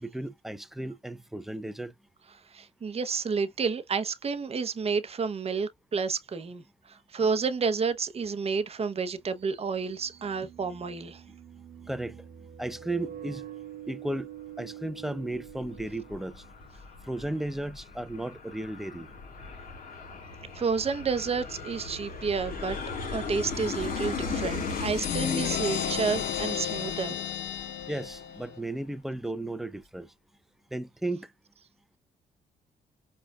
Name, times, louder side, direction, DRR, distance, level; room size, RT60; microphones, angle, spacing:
voice 1, 0.0-1.9 11.8-12.2 12.6-13.4 13.9-14.3 14.6-16.4 17.0-19.1 27.9-30.1 30.7-31.3, right 1 dB, ahead, 0.5 m, -34 dB
voice 2, 2.5-6.6 6.9-11.2 20.5-22.8 23.1-27.2, right 5 dB, 35° right, 0.7 m, -30 dB
sound 1, 8.3-8.4 9.8-16.7, right 10 dB, 55° right, 1.1 m, -45 dB
Aircraft, 15.3-28.5, left 5 dB, 50° left, 1.6 m, -37 dB
sound 2, 25.0-28.6, left 10 dB, 85° left, 0.6 m, -33 dB
4.9 x 2.3 x 2.3 m
supercardioid pair, 70°, 18 cm